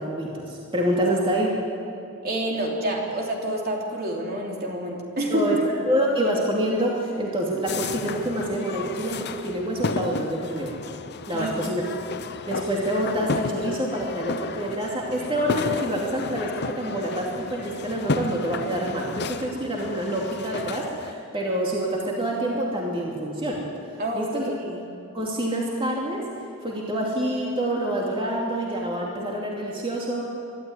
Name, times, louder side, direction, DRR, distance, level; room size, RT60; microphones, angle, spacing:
voice 1, 0.0-1.5 5.3-10.8 11.3-11.8 12.5-23.6 24.1-24.5 25.1-26.3 26.6-30.2, right 1 dB, 25° right, -3 dB, 2.7 m, -27 dB
voice 2, 2.2-5.5 11.3-11.5 24.0-24.8, right 1 dB, 45° right, -1 dB, 3.3 m, -28 dB
sound 1, 7.7-21.1, left 3 dB, 50° left, 0.8 m, -33 dB
23.5 x 12.5 x 9.6 m, 2.7 s
head